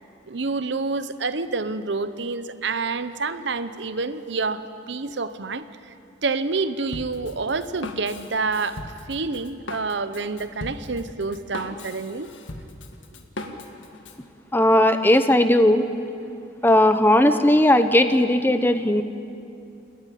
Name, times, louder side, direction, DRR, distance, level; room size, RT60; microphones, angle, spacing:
voice 1, 0.3-5.9 6.2-8.8 9.1-12.3 14.8-15.0, right 4 dB, 65° right, 12 dB, 0.8 m, -28 dB
Drum kit, 6.9-14.2, left 2 dB, 80° left, 1.7 m, -38 dB
voice 2, 14.5-15.8 16.6-19.0, left 1 dB, 10° left, 9 dB, 0.8 m, -17 dB
28.0 x 12.0 x 10.0 m, 2.6 s
head